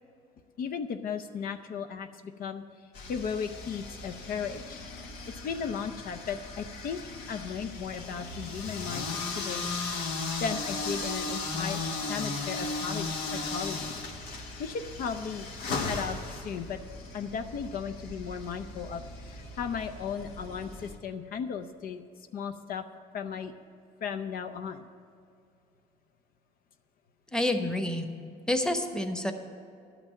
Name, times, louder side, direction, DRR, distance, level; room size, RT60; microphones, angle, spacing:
voice 1, 0.6-2.6 3.1-4.8 5.4-9.1 9.4-9.6 10.4-11.8 12.1-14.0 14.6-15.5 15.8-16.8 17.1-22.0 22.3-22.8 23.1-23.5 24.0-24.9, left 6 dB, 60° left, 8 dB, 0.6 m, -36 dB
sound 1, 2.9-21.0, left 3 dB, 80° left, 1.5 m, -37 dB
voice 2, 27.3-28.1 28.5-29.3, left 1 dB, 5° left, 5 dB, 1.0 m, -28 dB
11.5 x 6.0 x 9.0 m, 2.5 s
cardioid pair, 110°, 17 cm